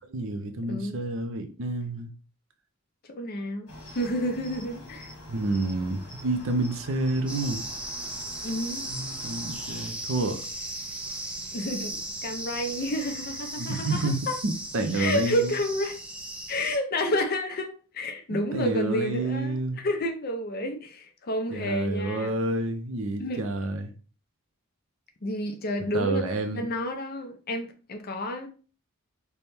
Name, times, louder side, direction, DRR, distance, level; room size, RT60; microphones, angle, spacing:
voice 1, 0.1-2.1 5.3-7.6 8.9-10.4 13.6-14.2 14.4-15.5 18.3-19.8 21.5-23.9 25.9-26.7, right 2 dB, 60° right, 0.5 m, -29 dB
voice 2, 3.1-3.7 3.9-5.1 8.4-8.9 11.5-14.4 15.0-16.0 16.5-22.4 23.2-23.4 25.2-26.3 26.5-28.5, left 1 dB, 45° left, 0.5 m, -30 dB
Cricket, 3.7-9.9, left 1 dB, 85° left, 1.4 m, -45 dB
sound 1, 7.3-16.8, right 1 dB, 5° right, 0.4 m, -37 dB
3.4 x 2.2 x 4.2 m
head